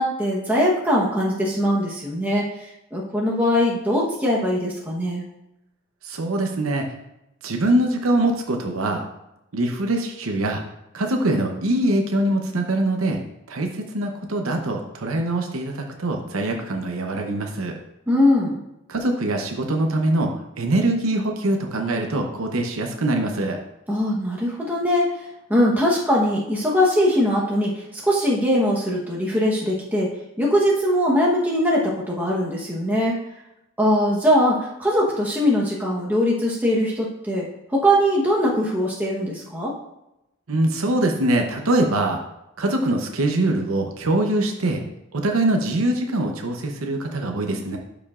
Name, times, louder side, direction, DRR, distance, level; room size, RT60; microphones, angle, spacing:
voice 1, 0.0-5.2 18.1-18.6 23.9-25.1 25.5-33.2 33.8-39.7, equal, 10° right, -4 dB, 1.0 m, -21 dB
voice 2, 6.0-6.9 7.4-9.1 9.5-10.6 10.9-13.2 13.5-17.7 18.9-23.6 40.5-42.2 42.6-44.8 45.1-47.8, right 1 dB, 80° right, 3 dB, 0.8 m, -23 dB
11.5 x 5.2 x 2.4 m, 0.88 s
head